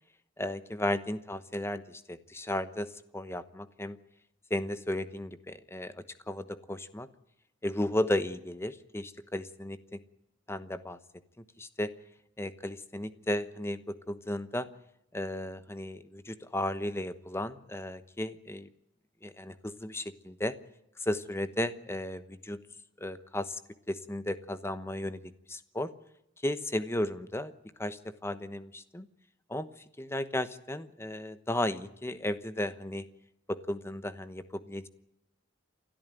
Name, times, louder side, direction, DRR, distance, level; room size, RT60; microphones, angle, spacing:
voice 1, 0.4-4.0 4.5-7.1 7.6-10.0 10.5-11.0 11.6-11.9 12.4-14.7 15.1-18.7 19.2-20.5 21.0-22.6 23.0-23.6 23.9-25.9 26.4-27.5 27.8-29.1 29.5-29.7 30.0-33.0 33.5-34.9, left 1 dB, 15° left, 12 dB, 1.0 m, -34 dB
28.5 x 13.0 x 9.0 m, 0.81 s
head